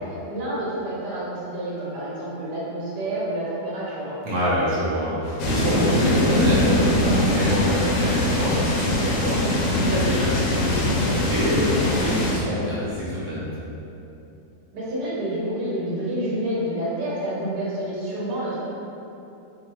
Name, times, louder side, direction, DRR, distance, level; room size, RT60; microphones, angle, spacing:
voice 1, 0.0-4.2 14.7-18.6, right 1 dB, 75° right, -7 dB, 1.6 m, -28 dB
voice 2, 4.2-13.5, equal, 40° right, -8 dB, 0.9 m, -26 dB
sound 1, 5.4-12.3, left 1 dB, 65° left, 0.9 m, -22 dB
5.2 x 2.4 x 3.0 m, 2.9 s
omnidirectional pair, 1.8 m